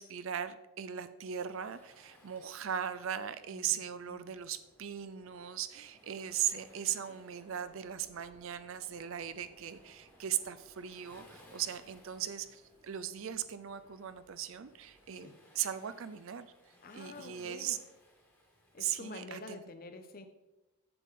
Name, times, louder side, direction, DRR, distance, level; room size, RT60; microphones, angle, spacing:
voice 1, 0.0-15.3 15.5-16.5 16.9-17.8 18.8-19.6, right 9 dB, 60° right, 12 dB, 0.4 m, -38 dB
Waves surf, 1.2-19.2, left 1 dB, 10° left, 1.3 m, -64 dB
Subway metro underground, 2.8-15.1, right 1 dB, 25° right, 0.7 m, -65 dB
voice 2, 3.5-4.3 15.1-15.4 16.8-17.8 18.7-20.3, left 3 dB, 40° left, 8 dB, 0.6 m, -48 dB
7.8 x 7.4 x 3.7 m, 1.0 s
head